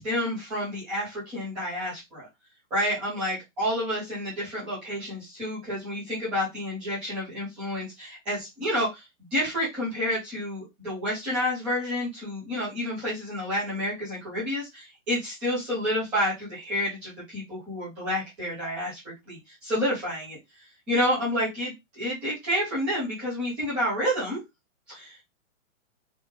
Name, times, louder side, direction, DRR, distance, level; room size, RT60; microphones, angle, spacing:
voice 1, 0.0-2.3 2.7-9.0 9.3-19.0 19.3-20.4 20.9-24.4 24.9-25.2, equal, 5° right, -9 dB, 0.3 m, -29 dB
3.5 x 2.4 x 3.0 m, 0.19 s
hypercardioid pair, 155°, 39 cm